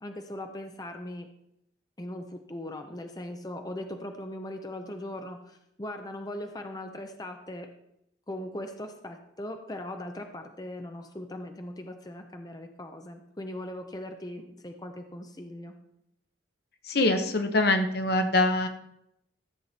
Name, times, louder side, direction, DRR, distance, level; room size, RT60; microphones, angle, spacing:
voice 1, 0.0-1.3 2.0-7.7 8.3-15.7, left 1 dB, 20° left, 5 dB, 0.7 m, -39 dB
voice 2, 16.8-18.7, left 2 dB, 55° left, 7 dB, 1.0 m, -24 dB
14.0 x 7.6 x 4.2 m, 0.81 s
head